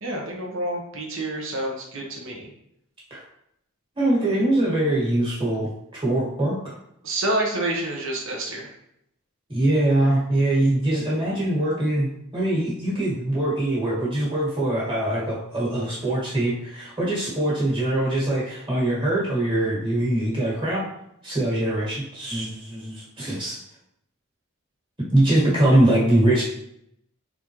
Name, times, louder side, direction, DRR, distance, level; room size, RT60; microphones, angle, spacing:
voice 1, 0.0-2.5 7.0-8.7, right 1 dB, 60° right, -1 dB, 1.0 m, -28 dB
voice 2, 4.0-6.6 9.5-20.9 21.2-23.6 25.1-26.4, right 1 dB, 20° right, -7 dB, 1.7 m, -22 dB
4.0 x 3.6 x 3.1 m, 0.77 s
head